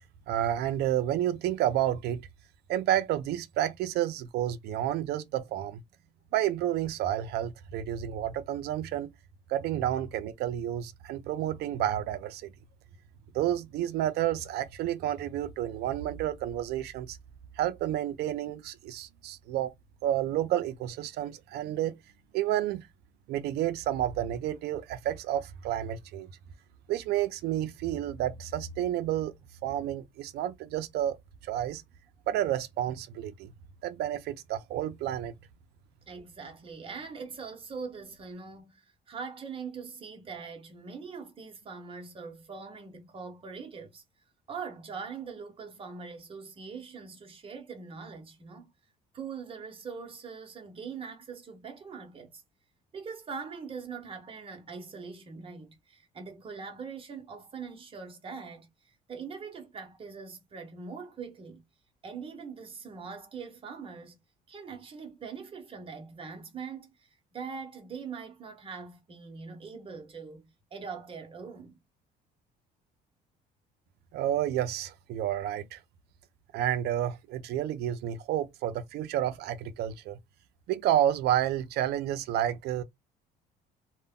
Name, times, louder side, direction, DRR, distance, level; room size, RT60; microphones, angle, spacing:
voice 1, 0.3-2.3 2.7-5.8 6.3-9.1 9.5-12.5 13.3-17.2 17.6-19.7 20.0-22.0 22.3-22.9 23.3-26.3 26.9-29.3 29.6-31.2 31.4-31.8 32.3-33.5 33.8-35.3 74.1-75.8 76.5-80.2 80.7-82.8, right 12 dB, 75° right, 0.4 m, -30 dB
voice 2, 36.1-44.0 44.5-48.7 49.1-52.4 52.9-61.6 62.0-64.2 64.5-66.9 67.3-71.8, right 5 dB, 30° right, 0.9 m, -42 dB
2.2 x 2.0 x 3.6 m
cardioid pair, 110°, 17 cm